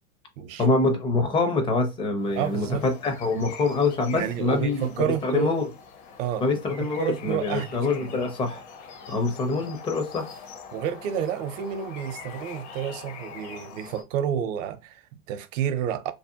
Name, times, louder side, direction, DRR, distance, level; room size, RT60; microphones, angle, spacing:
voice 1, 0.6-5.7 6.4-8.6 9.1-10.3, left 3 dB, 10° left, 0.4 m, -25 dB
sound 1, 2.2-14.0, left 6 dB, 50° left, 0.7 m, -44 dB
voice 2, 2.3-2.9 4.1-5.5 6.2-6.6 7.0-8.2 10.7-16.1, right 9 dB, 60° right, 0.6 m, -30 dB
2.7 x 2.0 x 2.7 m
hypercardioid pair, 105°, 44 cm